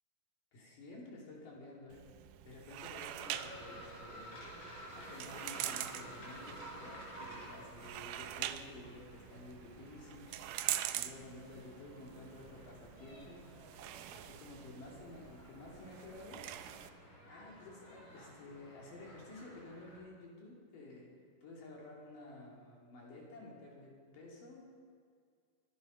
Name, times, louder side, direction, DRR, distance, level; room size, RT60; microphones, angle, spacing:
voice 1, 0.5-2.1 2.4-4.6 4.9-10.3 10.9-13.4 14.1-16.4 17.3-21.1 21.4-24.8, left 2 dB, 70° left, -3 dB, 4.5 m, -52 dB
sound 1, 1.9-16.9, right 12 dB, 75° right, 2.1 m, -45 dB
sound 2, 3.2-20.0, right 1 dB, 35° left, 5.0 m, -53 dB
23.5 x 9.8 x 5.5 m, 2.1 s
omnidirectional pair, 4.0 m